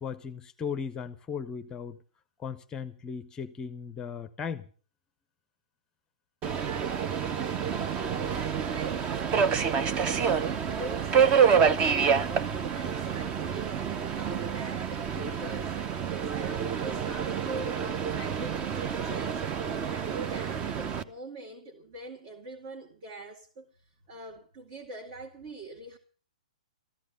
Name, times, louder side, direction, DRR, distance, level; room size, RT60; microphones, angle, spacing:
voice 1, 0.0-2.0 2.4-4.7, left 6 dB, 20° left, 0.7 m, -37 dB
Subway metro underground, 6.4-21.0, right 7 dB, 25° right, 0.8 m, -28 dB
voice 2, 7.7-15.8 16.3-19.5 19.9-26.0, right 3 dB, 45° right, 2.2 m, -43 dB
14.5 x 12.5 x 6.7 m
hypercardioid pair, 125°, 4 cm